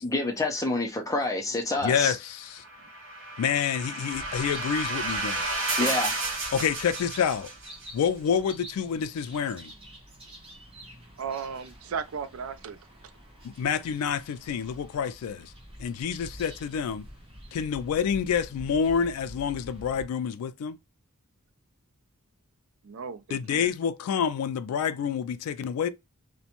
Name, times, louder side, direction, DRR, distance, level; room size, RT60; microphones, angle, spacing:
voice 1, 0.0-2.1 5.8-6.1, left 2 dB, 15° left, 0.4 m, -27 dB
voice 2, 1.8-2.6 3.4-5.5 6.5-7.5 7.9-9.7 13.4-15.5 15.8-17.1 17.5-20.8 23.3-25.9, left 7 dB, 85° left, 0.3 m, -28 dB
sound 1, 2.6-7.8, right 2 dB, 55° right, 0.8 m, -32 dB
sound 2, 4.1-20.1, equal, 25° right, 0.8 m, -48 dB
voice 3, 11.2-12.8 22.8-23.7, right 6 dB, 75° right, 0.4 m, -35 dB
2.5 x 2.1 x 2.8 m
head